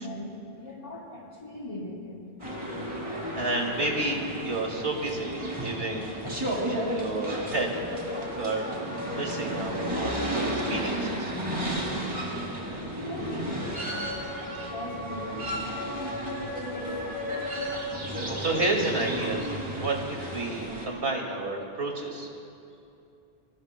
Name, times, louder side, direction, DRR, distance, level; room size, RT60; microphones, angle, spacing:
voice 1, 0.0-2.2 12.9-13.7 14.7-15.6 16.3-16.9, left 1 dB, 40° left, -6 dB, 3.8 m, -39 dB
sound 1, 2.4-20.9, equal, 30° right, 2.6 m, -33 dB
voice 2, 3.3-6.1 6.6-7.8 8.0-8.7 9.1-11.3 13.9-14.0 17.7-19.4 19.8-22.3, right 2 dB, 70° right, 0 dB, 2.4 m, -31 dB
28.0 x 20.5 x 2.2 m, 2.7 s
omnidirectional pair, 1.0 m